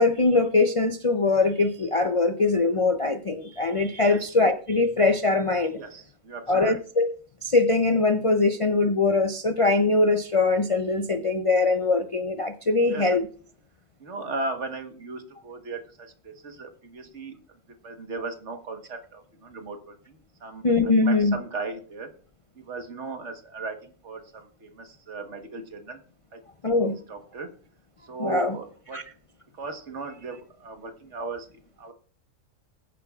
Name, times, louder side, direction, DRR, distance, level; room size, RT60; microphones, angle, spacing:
voice 1, 0.0-5.8 6.5-7.1 7.4-13.2 20.6-21.4 26.6-26.9 28.2-28.6 28.9-29.0, left 3 dB, 40° left, 6 dB, 0.5 m, -22 dB
voice 2, 5.8-6.8 12.8-13.2 14.0-17.4 17.8-22.1 22.5-26.0 26.3-26.4 26.7-27.5 28.0-29.0 29.5-31.9, right 3 dB, 60° right, 6 dB, 1.6 m, -37 dB
21.0 x 9.3 x 2.4 m, 0.42 s
omnidirectional pair, 1.4 m